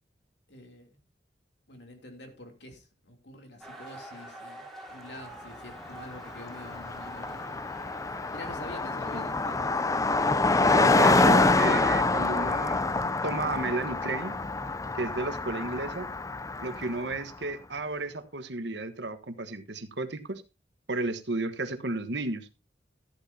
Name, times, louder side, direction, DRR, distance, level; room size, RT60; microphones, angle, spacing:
voice 1, 0.5-1.0 1.7-7.6 8.3-9.8, left 1 dB, 65° left, 4 dB, 3.1 m, -46 dB
sound 1, 3.6-9.4, right 1 dB, ahead, 3.1 m, -47 dB
Car passing by, 5.9-6.0 6.2-17.2, left 3 dB, 20° left, 0.5 m, -26 dB
voice 2, 10.6-14.4 14.9-16.1 16.6-20.4 20.9-22.5, right 2 dB, 65° right, 9 dB, 1.3 m, -33 dB
13.5 x 12.0 x 2.8 m, 0.27 s
head